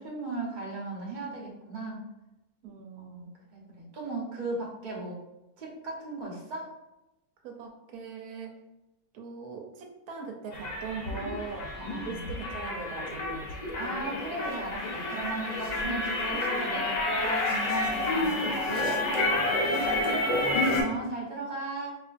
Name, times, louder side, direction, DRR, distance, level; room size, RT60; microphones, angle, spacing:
voice 1, 0.0-2.0 3.0-5.2 5.6-6.7 11.7-12.3 13.7-19.0 20.7-22.0, right 2 dB, 40° right, -3 dB, 0.9 m, -36 dB
voice 2, 2.6-3.3 7.4-8.5 9.1-11.7 12.0-13.8 14.9-15.1 19.6-20.7, right 5 dB, 90° right, 2 dB, 1.1 m, -41 dB
sound 1, 10.5-20.8, left 2 dB, 80° left, 0.3 m, -29 dB
4.2 x 2.5 x 2.4 m, 0.94 s
omnidirectional pair, 1.6 m